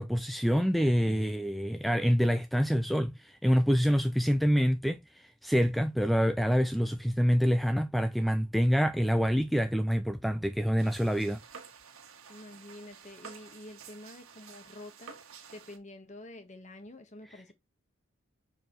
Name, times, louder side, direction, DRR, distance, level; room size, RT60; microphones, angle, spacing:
voice 1, 0.0-11.4, equal, ahead, 0.3 m, -26 dB
sound 1, 10.8-15.8, right 6 dB, 80° right, 1.5 m, -51 dB
voice 2, 12.3-15.2 15.5-17.5, left 1 dB, 35° left, 1.3 m, -48 dB
6.3 x 4.9 x 3.1 m
head